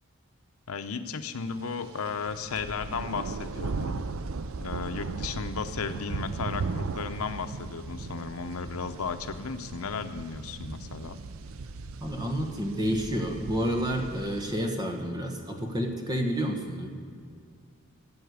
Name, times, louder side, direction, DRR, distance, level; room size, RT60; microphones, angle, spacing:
voice 1, 0.7-4.0 4.6-11.2, left 5 dB, 80° left, 9 dB, 0.7 m, -34 dB
sound 1, 1.8-14.5, right 4 dB, 70° right, 0.5 m, -37 dB
voice 2, 12.0-16.9, equal, 20° right, 3 dB, 1.4 m, -29 dB
14.5 x 7.9 x 8.1 m, 2.2 s
head